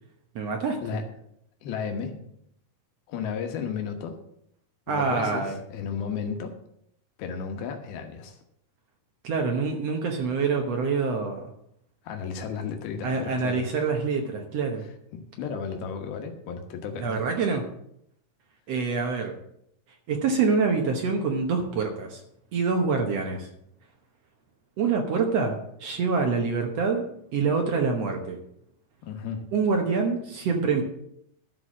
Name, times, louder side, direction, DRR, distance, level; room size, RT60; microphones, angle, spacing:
voice 1, 0.3-0.8 4.9-5.5 9.2-11.4 13.0-14.8 17.0-17.6 18.7-19.3 20.1-22.2 22.5-23.5 24.8-27.0 27.3-28.4 29.5-30.8, right 4 dB, 70° right, 3 dB, 1.5 m, -26 dB
voice 2, 1.6-2.2 3.1-4.2 4.9-6.5 7.2-8.4 12.0-13.7 15.1-17.3 29.0-29.5, left 6 dB, 75° left, 4 dB, 3.0 m, -33 dB
12.5 x 4.8 x 7.3 m, 0.74 s
omnidirectional pair, 4.4 m